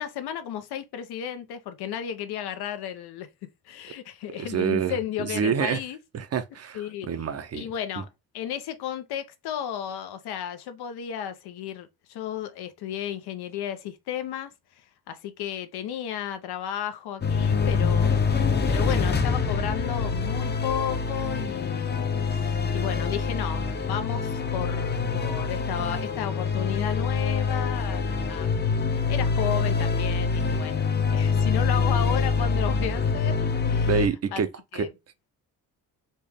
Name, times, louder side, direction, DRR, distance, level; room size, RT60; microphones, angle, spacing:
voice 1, 0.0-3.3 3.6-6.0 6.7-7.1 7.5-8.1 8.3-14.5 15.1-18.1 18.7-28.6 29.1-33.9 34.3-34.4 34.7-34.9, left 9 dB, 85° left, 0.9 m, -33 dB
voice 2, 4.4-5.8 6.1-6.8 7.1-7.7 33.8-34.5 34.7-34.9, right 6 dB, 40° right, 0.7 m, -27 dB
sound 1, 17.2-34.1, left 5 dB, 25° left, 0.7 m, -25 dB
4.3 x 3.0 x 3.5 m
cardioid pair, 135°, 38 cm